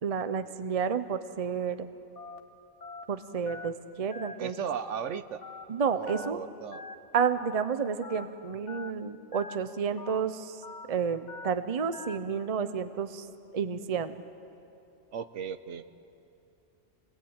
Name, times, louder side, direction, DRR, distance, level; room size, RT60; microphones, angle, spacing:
voice 1, 0.0-1.9 3.1-4.5 5.7-6.4 7.1-10.6 10.9-13.3 13.5-14.1, right 6 dB, 35° right, 11 dB, 0.8 m, -30 dB
Telephone, 2.2-2.4 2.8-3.0 3.5-3.7 4.1-4.3 4.8-5.0 5.4-5.6 6.1-6.3 6.7-6.9 7.4-7.6 8.0-8.2 8.7-8.9 9.3-9.6 10.0-10.2 10.6-10.9 11.3-11.5 11.9-12.2, left 4 dB, 75° left, 1.6 m, -43 dB
voice 2, 4.4-5.4 5.9-6.8 15.1-15.8, right 8 dB, 85° right, 11 dB, 1.2 m, -36 dB
25.5 x 19.5 x 8.9 m, 2.8 s
omnidirectional pair, 1.2 m